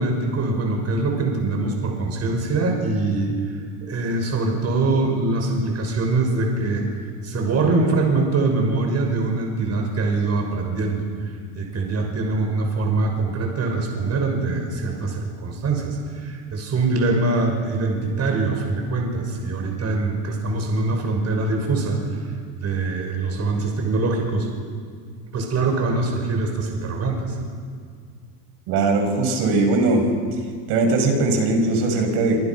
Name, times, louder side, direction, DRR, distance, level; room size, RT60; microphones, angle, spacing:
voice 1, 0.0-3.3 3.8-6.9 7.2-11.1 11.5-22.0 22.5-24.5 25.3-27.3, right 3 dB, 35° right, 2 dB, 6.2 m, -23 dB
voice 2, 28.7-30.1 30.7-32.4, right 3 dB, 65° right, 4 dB, 6.8 m, -20 dB
27.0 x 26.5 x 6.1 m, 2.1 s
supercardioid pair, 115°, 44 cm